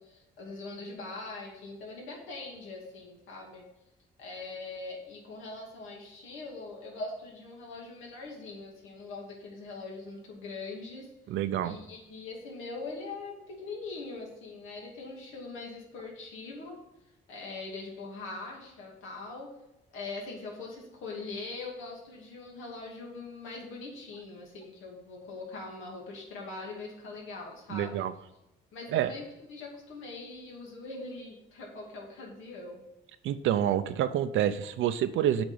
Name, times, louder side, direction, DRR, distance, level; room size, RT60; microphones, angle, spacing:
voice 1, 0.0-3.6 4.2-11.1 11.6-16.8 17.3-19.5 19.9-28.1 28.7-32.8, left 3 dB, 85° left, -1 dB, 2.6 m, -42 dB
voice 2, 11.3-11.8 27.7-28.1 28.9-29.1 33.2-35.4, right 10 dB, 80° right, 10 dB, 0.6 m, -27 dB
7.9 x 5.3 x 7.0 m, 0.91 s
cardioid pair, 90°, 20 cm